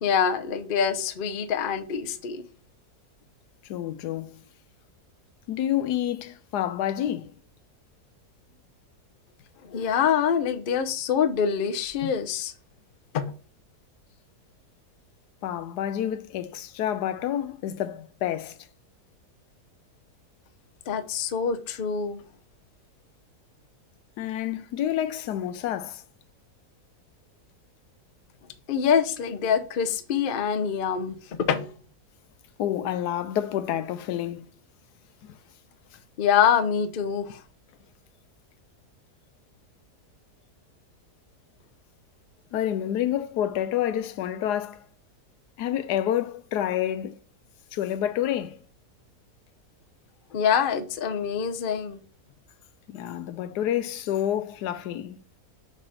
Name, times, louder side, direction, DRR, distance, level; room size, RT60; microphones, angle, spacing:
voice 1, 0.0-2.4 9.6-12.5 13.1-13.3 20.9-22.2 28.7-31.7 36.2-37.4 50.3-52.0, left 7 dB, 50° left, 0.6 m, -25 dB
voice 2, 3.7-4.4 5.5-7.3 15.4-18.6 24.2-26.0 32.6-34.5 42.5-44.8 45.6-47.2 47.7-48.6 52.9-55.2, left 11 dB, 85° left, 1.2 m, -28 dB
5.6 x 3.9 x 4.9 m
omnidirectional pair, 1.7 m